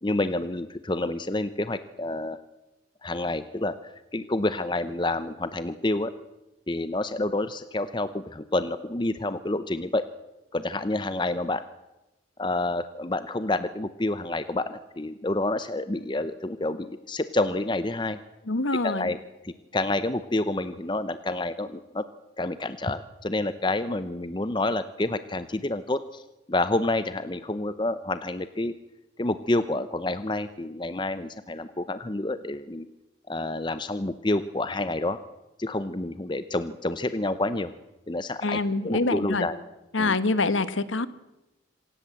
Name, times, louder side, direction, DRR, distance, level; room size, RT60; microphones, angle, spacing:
voice 1, 0.0-2.4 3.0-6.1 6.7-10.0 10.5-11.6 12.4-18.2 18.8-19.2 19.4-22.1 22.4-26.2 26.5-28.7 29.2-32.9 33.3-35.2 35.6-37.7 38.1-39.6 40.0-40.2, left 2 dB, 25° left, 12 dB, 0.7 m, -28 dB
voice 2, 18.5-19.1 38.4-39.5 39.9-41.1, left 3 dB, 80° left, 15 dB, 1.2 m, -25 dB
26.5 x 17.0 x 7.7 m, 1.0 s
head